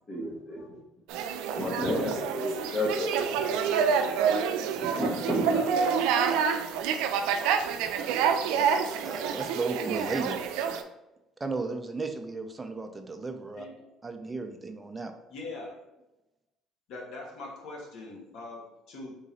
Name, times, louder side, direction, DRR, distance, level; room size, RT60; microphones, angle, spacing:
voice 1, 0.1-0.8 1.5-3.3 3.7-3.8 4.8-5.7, left 1 dB, 40° left, -6 dB, 1.2 m, -31 dB
sound 1, 1.1-10.8, right 7 dB, 85° right, 0.4 m, -27 dB
voice 2, 9.0-10.3 11.4-13.7 14.0-15.1, right 3 dB, 20° right, 6 dB, 0.6 m, -34 dB
voice 3, 13.6-13.9 15.3-15.8 16.9-19.1, left 2 dB, 70° left, -2 dB, 1.4 m, -42 dB
3.7 x 3.1 x 3.9 m, 0.95 s
cardioid pair, 100°, 0 cm